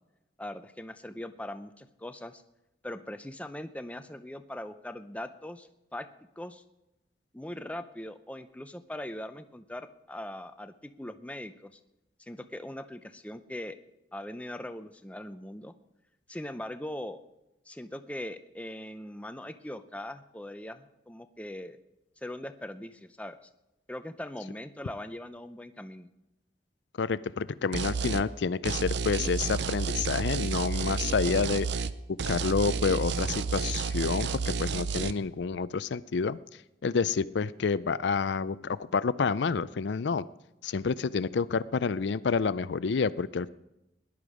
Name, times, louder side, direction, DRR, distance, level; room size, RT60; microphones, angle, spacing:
voice 1, 0.4-2.4 2.8-6.1 6.4-6.6 7.3-11.8 12.2-13.8 14.1-15.7 16.3-17.2 17.7-21.8 22.2-23.5 23.9-26.1, left 1 dB, 5° left, 10 dB, 0.6 m, -40 dB
voice 2, 27.0-31.7 32.3-34.3 34.6-36.4 36.8-40.2 40.6-43.5, left 5 dB, 75° left, 18 dB, 0.4 m, -28 dB
sound 1, 27.7-28.2 28.6-35.1, right 5 dB, 70° right, 0.6 m, -31 dB
18.5 x 11.0 x 5.0 m, 0.95 s
head